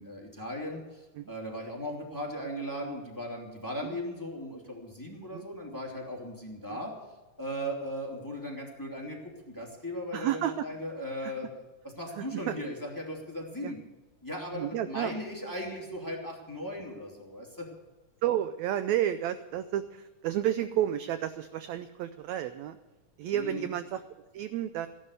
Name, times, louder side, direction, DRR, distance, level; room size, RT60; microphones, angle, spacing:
voice 1, 0.0-6.9 7.4-9.2 9.5-11.5 11.8-13.8 14.2-17.7 23.3-23.7, equal, 5° left, -1 dB, 2.3 m, -37 dB
voice 2, 10.1-10.6 11.2-11.3 12.2-12.5 13.6-13.7 14.5-15.1 18.2-22.8 23.2-24.0 24.3-24.9, right 11 dB, 80° right, 12 dB, 1.6 m, -31 dB
15.5 x 11.0 x 6.6 m, 1.1 s
omnidirectional pair, 3.7 m